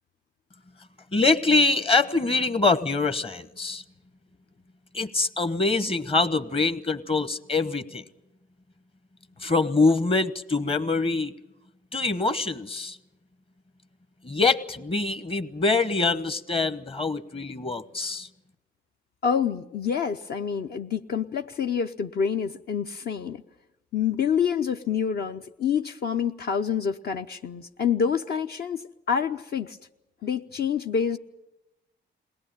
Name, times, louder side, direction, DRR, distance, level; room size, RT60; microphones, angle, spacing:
voice 1, 1.1-3.8 4.9-8.0 9.4-11.3 11.9-13.0 14.2-18.3, left 3 dB, 30° left, 12 dB, 1.2 m, -24 dB
voice 2, 19.2-23.4 23.9-29.8 30.2-31.2, left 7 dB, 55° left, 6 dB, 0.8 m, -27 dB
21.5 x 18.0 x 9.0 m, 0.96 s
cardioid pair, 90°, 20 cm